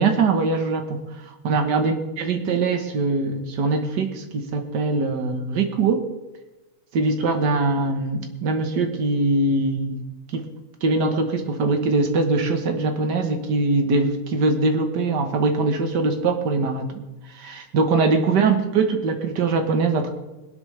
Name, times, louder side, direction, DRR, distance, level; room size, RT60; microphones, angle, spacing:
voice 1, 0.0-6.1 6.9-10.5 10.8-17.0 17.3-20.1, right 3 dB, 50° right, 5 dB, 1.2 m, -22 dB
21.0 x 12.0 x 3.4 m, 1.1 s
omnidirectional pair, 3.4 m